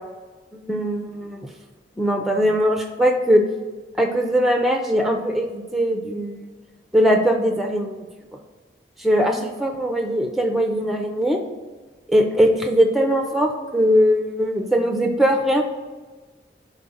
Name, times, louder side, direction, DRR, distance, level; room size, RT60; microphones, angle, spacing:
voice 1, 0.5-1.5 2.0-3.4 4.0-6.4 6.9-8.1 9.0-11.4 12.1-15.6, equal, ahead, 4 dB, 0.5 m, -20 dB
5.0 x 4.2 x 5.4 m, 1.3 s
head